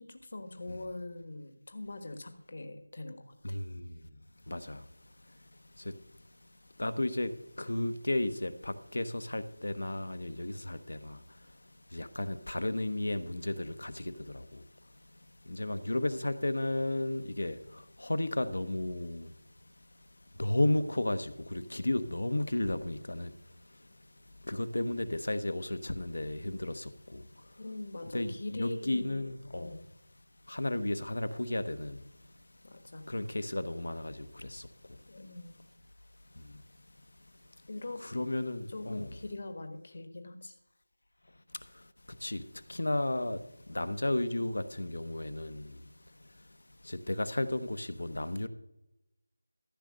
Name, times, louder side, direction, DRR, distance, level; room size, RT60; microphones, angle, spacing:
voice 1, 0.0-3.6 27.6-29.3 29.6-29.8 32.6-33.0 35.1-35.6 37.7-38.0 38.7-40.6, left 2 dB, 50° left, 1.4 m, -42 dB
voice 2, 3.4-4.2 4.5-6.0 6.6-14.7 15.0-19.4 19.8-19.9 20.3-27.6 28.1-29.8 30.5-32.5 33.0-35.0 36.3-36.6 37.5-37.6 38.0-39.2 41.5-46.6 46.8-48.5, left 1 dB, 75° left, 1.0 m, -34 dB
14.0 x 6.6 x 6.3 m
figure-of-eight pair, 170°, 0 cm